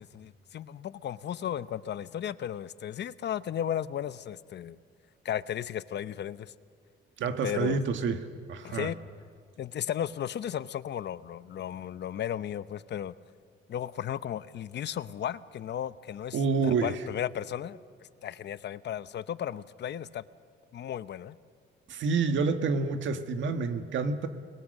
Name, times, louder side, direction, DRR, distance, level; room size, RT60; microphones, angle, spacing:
voice 1, 0.0-4.8 5.2-6.5 7.4-7.8 8.6-9.0 9.6-13.1 13.7-17.8 18.2-20.2 20.7-21.4, left 10 dB, 60° left, 15 dB, 0.8 m, -35 dB
voice 2, 7.2-8.2 8.5-8.9 16.3-16.9 21.9-24.3, right 5 dB, 70° right, 7 dB, 1.8 m, -28 dB
29.0 x 21.5 x 6.7 m, 2.1 s
cardioid pair, 90°, 20 cm